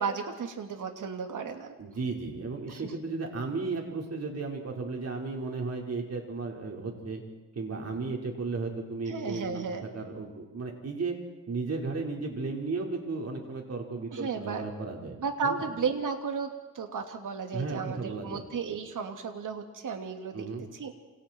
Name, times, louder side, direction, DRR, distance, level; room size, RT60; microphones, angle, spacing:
voice 1, 0.0-1.7 2.7-2.9 9.1-9.9 14.1-14.7 15.2-20.5 20.7-21.0, right 5 dB, 80° right, 5 dB, 2.8 m, -34 dB
voice 2, 1.8-7.2 7.5-11.2 11.5-15.2 15.4-15.6 17.5-18.4 20.3-20.6, right 3 dB, 55° right, 0 dB, 5.1 m, -34 dB
28.0 x 28.0 x 4.7 m, 1.1 s
cardioid pair, 85°, 31 cm